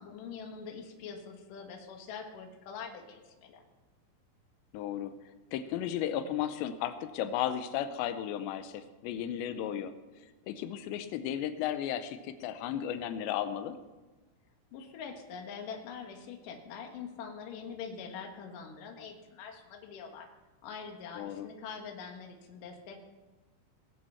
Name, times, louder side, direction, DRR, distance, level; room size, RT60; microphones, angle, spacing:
voice 1, 0.0-3.6 14.7-20.3 20.6-23.0, left 6 dB, 60° left, 3 dB, 2.7 m, -44 dB
voice 2, 4.7-5.1 5.5-9.9 10.5-13.8 21.2-21.5, left 10 dB, 90° left, 10 dB, 2.9 m, -34 dB
19.5 x 7.6 x 5.7 m, 1.2 s
omnidirectional pair, 5.0 m